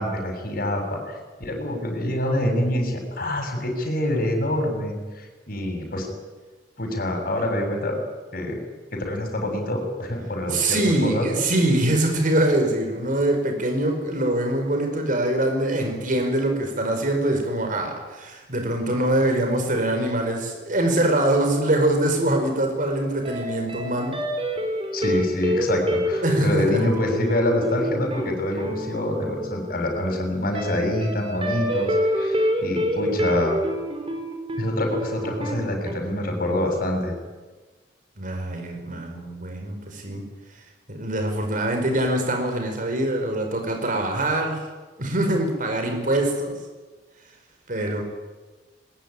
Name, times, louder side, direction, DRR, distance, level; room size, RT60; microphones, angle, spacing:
voice 1, 0.0-6.1 6.8-8.0 8.3-8.6 8.9-11.3 24.9-33.6 34.6-37.1, left 1 dB, 55° left, 3 dB, 7.3 m, -26 dB
voice 2, 10.5-24.2 26.2-26.8 38.2-40.2 40.9-44.6 45.0-46.6 47.7-48.0, right 1 dB, 50° right, 4 dB, 5.0 m, -23 dB
sound 1, 23.2-23.4 23.7-35.9, equal, 30° right, 4.9 m, -27 dB
21.5 x 20.5 x 9.9 m, 1.3 s
head